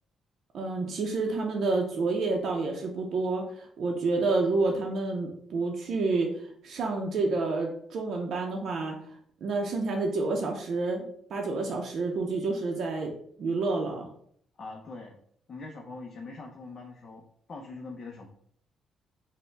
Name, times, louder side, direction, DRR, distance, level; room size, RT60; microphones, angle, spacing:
voice 1, 0.5-9.2 9.4-11.0 11.3-13.1 13.4-14.1, right 3 dB, 65° right, 1 dB, 0.5 m, -29 dB
voice 2, 14.6-15.2 15.5-17.2 17.5-18.3, left 3 dB, 45° left, 1 dB, 0.5 m, -42 dB
4.2 x 2.1 x 3.4 m, 0.65 s
cardioid pair, 90°, 0 cm